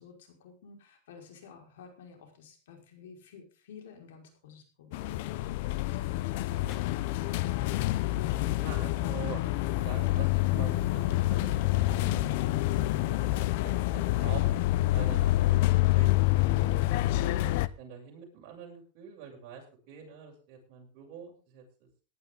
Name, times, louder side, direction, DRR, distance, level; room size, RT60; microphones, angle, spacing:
voice 1, 0.0-7.0, left 6 dB, 80° left, 3 dB, 5.2 m, -52 dB
sound 1, 4.9-17.7, left 17 dB, 55° left, 0.7 m, -27 dB
sound 2, 5.8-12.3, left 4 dB, 10° left, 0.7 m, -49 dB
voice 2, 8.4-11.5 11.8-14.5 14.9-16.8 17.1-21.9, right 7 dB, 45° right, 0 dB, 7.6 m, -46 dB
18.0 x 11.5 x 3.9 m, 0.35 s
supercardioid pair, 145°, 0 cm